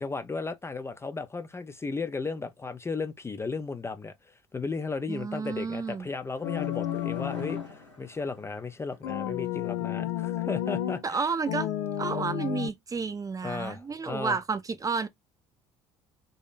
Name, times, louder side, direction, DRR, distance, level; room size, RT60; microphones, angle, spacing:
voice 1, 0.0-11.3 13.4-14.4, left 4 dB, 15° left, 0.6 m, -35 dB
voice 2, 5.1-6.1 11.0-11.7 12.0-15.1, right 5 dB, 20° right, 0.7 m, -31 dB
sound 1, 5.5-9.2 9.4-9.5, left 2 dB, 85° left, 1.5 m, -49 dB
sound 2, 6.4-7.7 9.0-11.0 11.5-12.7, left 11 dB, 60° left, 0.5 m, -31 dB
3.9 x 3.0 x 3.9 m
figure-of-eight pair, 60°, 15 cm